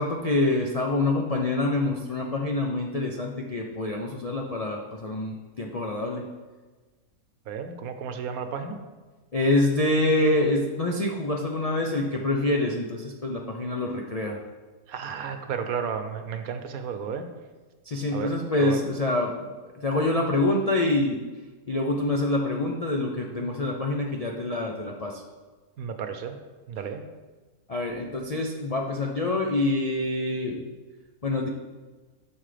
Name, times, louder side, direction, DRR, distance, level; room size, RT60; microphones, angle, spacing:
voice 1, 0.0-6.2 9.3-14.4 17.9-19.3 19.8-21.2 21.7-25.2 27.7-30.6 31.2-31.5, left 2 dB, 50° left, 0 dB, 0.4 m, -26 dB
voice 2, 7.5-8.8 14.9-17.3 18.1-18.9 25.8-26.4 26.7-27.0, right 7 dB, 70° right, 8 dB, 1.2 m, -33 dB
11.0 x 6.2 x 3.4 m, 1.3 s
omnidirectional pair, 1.6 m